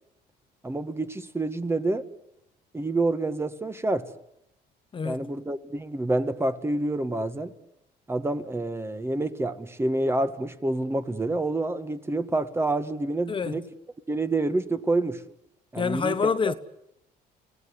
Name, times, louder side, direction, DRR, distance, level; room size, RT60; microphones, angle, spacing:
voice 1, 0.6-2.1 2.7-4.1 5.0-7.5 8.1-13.6 14.1-15.2 15.7-16.5, right 2 dB, 15° right, 1.6 m, -28 dB
voice 2, 15.8-16.5, left 5 dB, 30° left, 1.1 m, -26 dB
30.0 x 17.5 x 9.7 m
cardioid pair, 110°, 17 cm